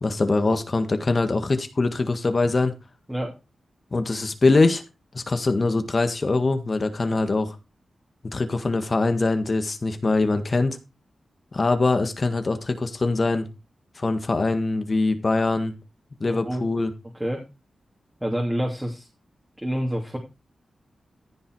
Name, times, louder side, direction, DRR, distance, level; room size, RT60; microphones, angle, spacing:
voice 1, 0.0-2.7 3.9-4.8 5.1-7.6 8.3-10.8 11.5-13.5 14.0-15.7 16.2-16.9, left 3 dB, 45° left, 8 dB, 1.7 m, -23 dB
voice 2, 16.2-16.7 17.1-17.4 18.2-19.1 19.6-20.2, equal, 10° right, 0 dB, 3.0 m, -28 dB
14.5 x 5.4 x 4.8 m, 0.27 s
cardioid pair, 60°, 0 cm